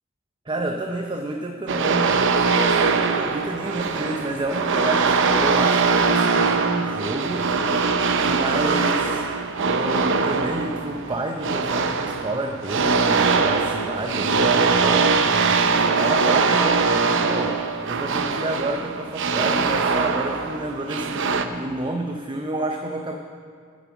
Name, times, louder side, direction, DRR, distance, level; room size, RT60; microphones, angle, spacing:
voice 1, 0.5-7.5 8.2-9.3 9.6-23.2, right 1 dB, 25° right, 3 dB, 0.6 m, -30 dB
sound 1, 1.7-21.5, right 4 dB, 60° right, 0.7 m, -22 dB
10.5 x 9.0 x 7.2 m, 2.2 s
head